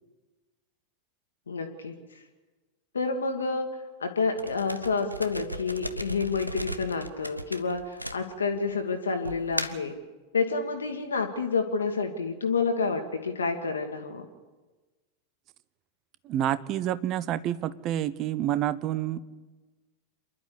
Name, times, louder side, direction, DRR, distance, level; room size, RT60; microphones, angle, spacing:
voice 1, 1.5-1.9 2.9-3.7 4.0-9.9 10.3-14.3, left 4 dB, 70° left, 5 dB, 1.7 m, -29 dB
sound 1, 4.4-8.7 9.2-9.9, equal, 90° right, 0.8 m, -36 dB
voice 2, 16.2-19.2, right 12 dB, 35° right, 16 dB, 0.8 m, -28 dB
27.5 x 11.5 x 8.5 m, 1.3 s
figure-of-eight pair, 90°, 0 cm